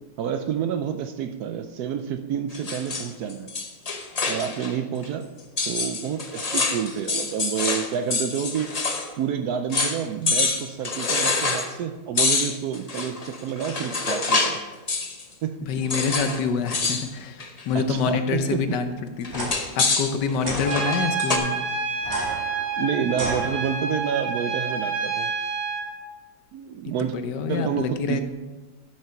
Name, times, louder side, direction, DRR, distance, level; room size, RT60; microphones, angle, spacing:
voice 1, 0.2-3.5 4.3-5.3 5.7-8.8 9.2-14.6 15.4-15.5 17.7-18.8 22.8-25.3 26.5-27.2 27.5-28.2, right 8 dB, 70° right, 8 dB, 1.0 m, -29 dB
sound 1, 2.5-4.8 5.0-5.1 5.6-9.1 9.4-9.5 9.7-10.0 10.3-11.7 12.2-14.6 14.9-15.2 15.9-16.4 16.7-17.1 17.4-17.7 19.2-21.4, left 3 dB, 45° left, 0.5 m, -26 dB
voice 2, 15.6-21.5 26.8-28.2, left 5 dB, 75° left, 8 dB, 1.4 m, -27 dB
sound 2, 19.3-19.5 20.4-20.7 22.0-24.0, right 2 dB, 50° right, 2.7 m, -33 dB
Trumpet, 20.7-25.9, right 4 dB, 10° left, 2.7 m, -28 dB
11.5 x 6.5 x 4.5 m, 1.2 s
omnidirectional pair, 1.9 m